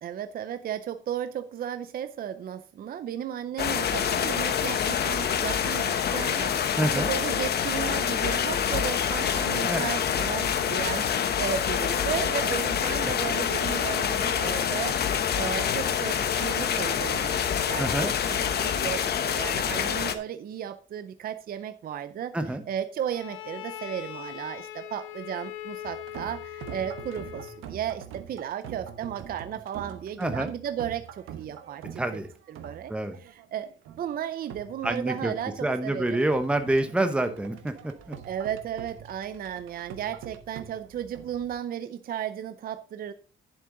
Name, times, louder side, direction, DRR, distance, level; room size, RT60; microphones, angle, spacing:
voice 1, 0.0-32.2 32.5-33.7 34.0-36.2 38.2-43.1, right 9 dB, 45° right, 11 dB, 0.6 m, -35 dB
sound 1, 3.6-20.1, left 8 dB, 55° left, 1.0 m, -26 dB
voice 2, 6.8-7.1 9.2-9.8 17.8-18.1 22.3-22.6 30.2-30.5 32.0-32.3 32.9-33.2 34.8-35.3 35.6-38.2, right 1 dB, 5° right, 8 dB, 0.9 m, -27 dB
Bowed string instrument, 23.1-27.7, left 12 dB, 85° left, 1.0 m, -40 dB
sound 2, 25.8-41.5, right 8 dB, 85° right, 1.1 m, -44 dB
10.5 x 7.5 x 3.8 m, 0.36 s
cardioid pair, 140°, 20 cm